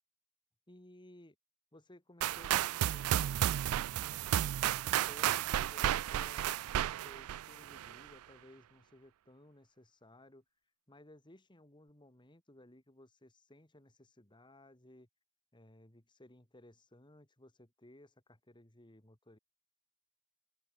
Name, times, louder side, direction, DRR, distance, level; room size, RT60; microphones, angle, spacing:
voice 1, 0.7-1.4 1.7-3.2 3.5-4.2 5.1-10.4 10.9-15.1 15.5-19.4, left 1 dB, 20° left, 2.4 m, -59 dB
sound 1, 2.2-8.1, right 11 dB, 85° right, 0.3 m, -33 dB
open air
head